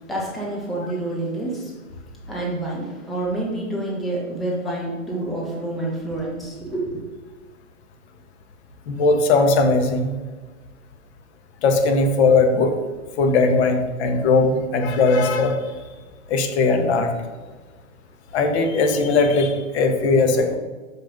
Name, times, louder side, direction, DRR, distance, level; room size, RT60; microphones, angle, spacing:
voice 1, 0.1-1.7 2.3-7.0, right 2 dB, ahead, -4 dB, 0.3 m, -28 dB
voice 2, 8.9-10.1 11.6-12.8 13.2-15.6 16.3-17.1 18.3-20.6, left 3 dB, 55° left, 4 dB, 1.4 m, -19 dB
6.2 x 5.4 x 5.2 m, 1.3 s
hypercardioid pair, 130°, 41 cm